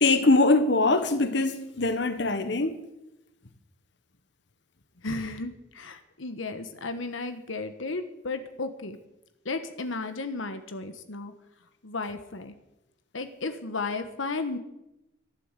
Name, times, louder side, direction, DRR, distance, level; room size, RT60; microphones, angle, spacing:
voice 1, 0.0-2.7, left 2 dB, 60° left, 1.2 m, -22 dB
voice 2, 5.0-9.0 9.4-11.3 11.8-12.5 13.1-14.6, left 3 dB, 80° left, 1.2 m, -34 dB
14.0 x 11.5 x 8.1 m
head